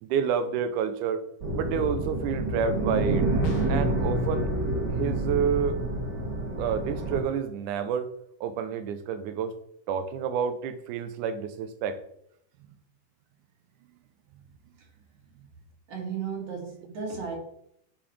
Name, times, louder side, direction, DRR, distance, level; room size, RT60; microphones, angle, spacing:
voice 1, 0.0-1.2 1.5-3.3 3.7-4.5 4.9-5.8 6.6-8.1 8.4-9.5 9.9-12.0, right 7 dB, 85° right, 9 dB, 2.2 m, -29 dB
sound 1, 1.4-7.2, right 2 dB, 45° right, 1.6 m, -28 dB
sound 2, 3.4-4.0, left 3 dB, 65° left, 1.7 m, -38 dB
voice 2, 15.9-17.4, right 6 dB, 70° right, -2 dB, 3.4 m, -34 dB
9.2 x 6.2 x 3.3 m, 0.72 s
omnidirectional pair, 3.5 m